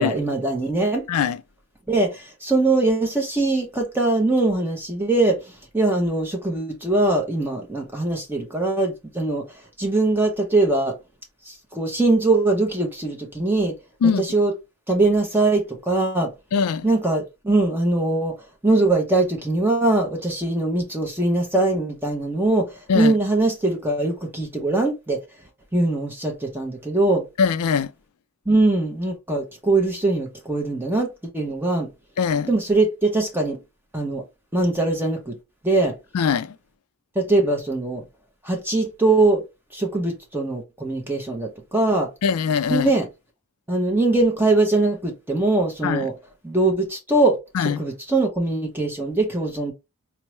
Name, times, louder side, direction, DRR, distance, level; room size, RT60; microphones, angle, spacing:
voice 1, 0.0-1.0 1.9-9.5 9.8-11.0 11.5-13.7 14.2-14.5 14.9-16.3 16.8-18.4 18.6-25.2 25.7-27.2 28.5-31.9 32.5-33.6 33.9-34.2 34.5-35.3 35.6-35.9 37.2-38.0 38.4-39.4 39.7-42.1 42.7-43.1 43.7-46.1 46.4-49.7, right 2 dB, 10° right, 0.6 m, -22 dB
voice 2, 1.1-1.4 14.0-14.2 16.5-16.9 22.9-23.1 27.4-27.9 32.2-32.5 36.1-36.6 42.2-42.9 45.8-46.1 47.5-47.8, left 6 dB, 80° left, 0.4 m, -21 dB
4.4 x 2.0 x 3.0 m
head